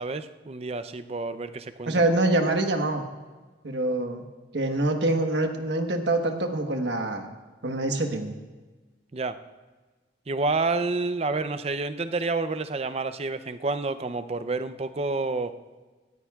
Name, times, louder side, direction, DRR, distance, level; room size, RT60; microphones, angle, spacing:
voice 1, 0.0-2.0 9.1-9.4 10.3-15.5, right 3 dB, 35° right, 11 dB, 0.5 m, -29 dB
voice 2, 1.9-3.0 3.6-4.2 4.5-7.3 7.6-8.3, right 2 dB, 80° right, 5 dB, 1.2 m, -25 dB
19.0 x 14.0 x 2.4 m, 1.3 s
head